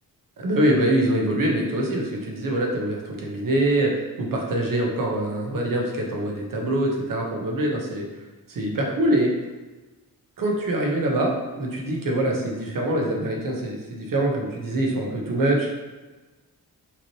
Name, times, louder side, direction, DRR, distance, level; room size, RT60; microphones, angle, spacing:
voice 1, 0.4-3.9 4.2-8.0 8.5-9.3 10.4-15.7, right 1 dB, 65° right, -1 dB, 1.0 m, -24 dB
5.8 x 3.1 x 2.9 m, 1.2 s
wide cardioid pair, 105°, 36 cm